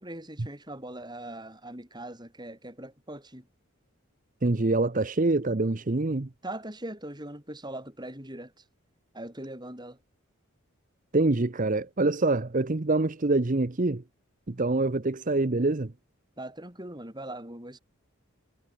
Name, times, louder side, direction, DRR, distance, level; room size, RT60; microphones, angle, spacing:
voice 1, 0.0-3.5 6.4-8.5 9.1-10.0 16.4-17.8, right 1 dB, 20° right, 7.9 m, -40 dB
voice 2, 4.4-6.3 11.1-14.0 14.5-15.9, right 2 dB, 35° right, 0.8 m, -25 dB
head